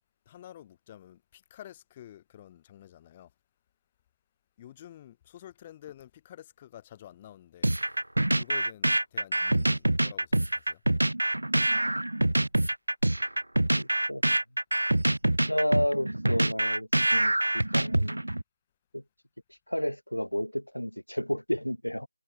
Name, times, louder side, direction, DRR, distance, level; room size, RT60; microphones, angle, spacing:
voice 1, 0.2-3.3 4.6-7.7 8.3-10.8, left 12 dB, 15° left, 1.6 m, -49 dB
sound 1, 7.6-18.4, right 1 dB, 70° right, 0.8 m, -25 dB
voice 2, 13.8-14.4 15.5-18.2 18.9-19.0 19.7-22.1, equal, 85° left, 2.0 m, -31 dB
figure-of-eight pair, 160°, 0 cm